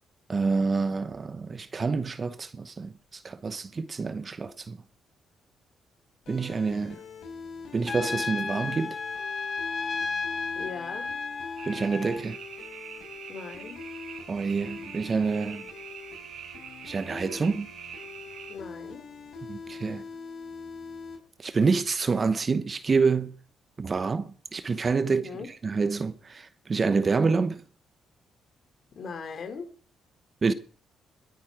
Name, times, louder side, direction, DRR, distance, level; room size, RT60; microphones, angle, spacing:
voice 1, 0.3-2.9 3.2-4.8 6.3-7.0 7.7-9.0 11.7-12.4 14.3-15.6 16.8-17.7 19.5-20.0 21.4-23.3 23.8-25.2 25.6-27.6 30.4-30.5, right 4 dB, 35° right, 1.0 m, -27 dB
sound 1, 6.3-21.2, left 5 dB, 75° left, 5.6 m, -44 dB
Trumpet, 7.9-12.2, left 4 dB, 35° left, 1.2 m, -33 dB
voice 2, 10.5-11.1 13.3-13.8 18.5-19.0 25.0-25.5 28.9-29.7, left 5 dB, 55° left, 3.2 m, -39 dB
sound 2, 11.6-18.6, right 8 dB, 70° right, 1.6 m, -44 dB
22.0 x 9.4 x 4.9 m
cardioid pair, 90°, 0 cm